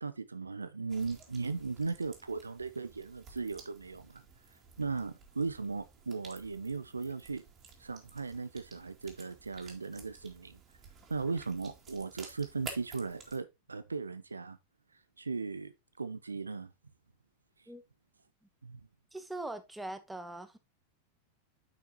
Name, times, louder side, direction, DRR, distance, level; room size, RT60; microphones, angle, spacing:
voice 1, 0.0-4.2 4.8-7.4 7.8-10.6 11.1-14.6 15.2-15.7 16.0-16.7 18.6-18.8, right 4 dB, 75° right, 0.6 m, -37 dB
sound 1, 0.9-13.4, right 5 dB, 25° right, 2.4 m, -53 dB
voice 2, 19.1-20.6, right 2 dB, 5° right, 1.1 m, -41 dB
9.2 x 5.9 x 2.9 m
figure-of-eight pair, 90°, 0 cm